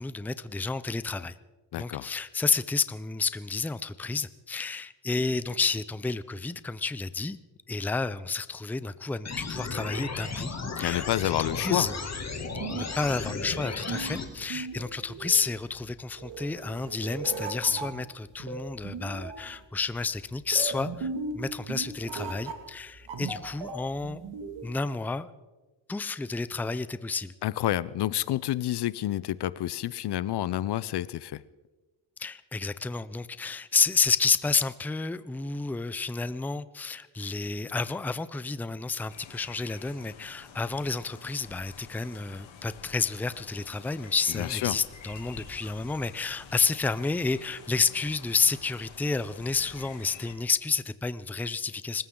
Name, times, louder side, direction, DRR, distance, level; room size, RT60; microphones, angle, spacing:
voice 1, 0.0-1.3 1.8-7.4 7.7-10.5 10.8-12.0 12.7-21.1 21.3-24.2 24.6-25.3 25.9-27.3 32.2-52.0, left 4 dB, 5° left, 14 dB, 0.5 m, -30 dB
voice 2, 1.7-2.1 10.8-11.9 27.4-31.4 44.3-44.8, left 13 dB, 60° left, 19 dB, 0.6 m, -29 dB
sound 1, 9.2-14.2, left 4 dB, 35° left, 2.3 m, -35 dB
sound 2, 12.2-24.7, right 4 dB, 75° right, 2.2 m, -38 dB
sound 3, 39.1-50.3, left 6 dB, 80° left, 2.7 m, -48 dB
25.5 x 14.5 x 3.8 m, 1.2 s
cardioid pair, 95°, 46 cm